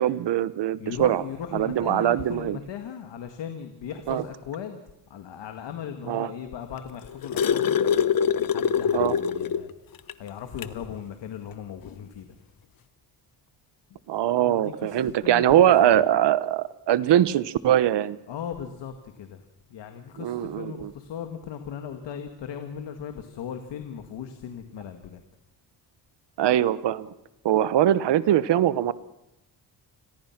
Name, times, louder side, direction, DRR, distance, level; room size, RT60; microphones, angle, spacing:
voice 1, 0.0-1.2 1.5-2.6 4.1-4.2 6.1-6.3 8.9-9.1 14.1-18.2 20.2-20.9 26.4-27.1 27.4-28.9, right 11 dB, 75° right, 16 dB, 1.1 m, -22 dB
voice 2, 0.8-4.8 5.1-7.9 8.4-9.7 10.2-12.4 13.9-14.0 14.4-16.0 18.3-25.2, left 8 dB, 85° left, 6 dB, 2.0 m, -38 dB
sound 1, 6.8-9.7 10.1-10.2 10.6-10.8 11.9-12.0, left 7 dB, 55° left, 1.0 m, -24 dB
29.0 x 21.5 x 6.0 m, 0.88 s
cardioid pair, 130°, 42 cm